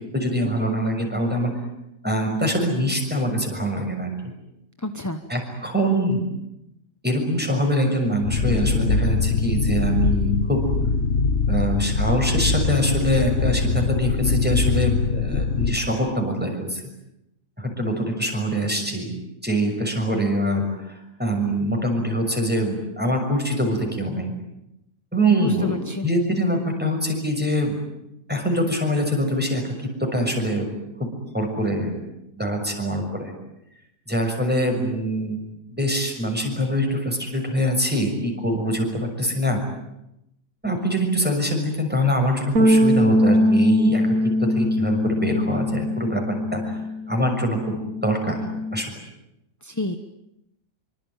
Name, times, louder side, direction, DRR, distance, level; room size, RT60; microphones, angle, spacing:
voice 1, 0.1-1.5 2.0-4.3 5.3-6.2 7.0-10.6 11.5-16.8 17.6-24.3 25.1-27.8 28.3-30.7 31.0-32.0 32.4-33.3 34.1-35.4 35.7-39.6 40.6-46.8 47.1-48.4 48.7-48.9, equal, 5° right, 3 dB, 6.4 m, -24 dB
voice 2, 4.8-5.2 25.4-26.1 49.6-50.0, left 2 dB, 15° left, 8 dB, 0.9 m, -29 dB
sound 1, 8.2-15.8, left 4 dB, 45° left, 1.5 m, -22 dB
sound 2, 42.6-47.1 47.4-48.8, equal, 55° right, 1.8 m, -21 dB
26.0 x 25.0 x 9.1 m, 0.86 s
omnidirectional pair, 1.7 m